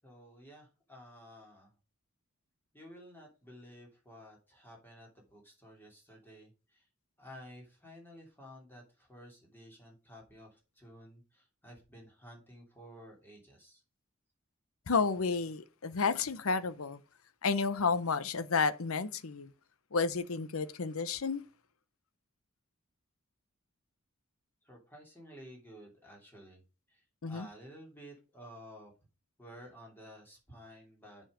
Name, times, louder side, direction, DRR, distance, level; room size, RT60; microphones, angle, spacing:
voice 1, 0.0-1.7 2.7-6.9 7.2-13.8 24.6-26.6 26.9-28.9 29.4-31.3, equal, 10° left, 2.9 m, -53 dB
voice 2, 14.9-17.0 17.4-19.5 19.9-21.4 27.2-27.5, left 4 dB, 75° left, 0.8 m, -31 dB
7.6 x 5.4 x 5.0 m
head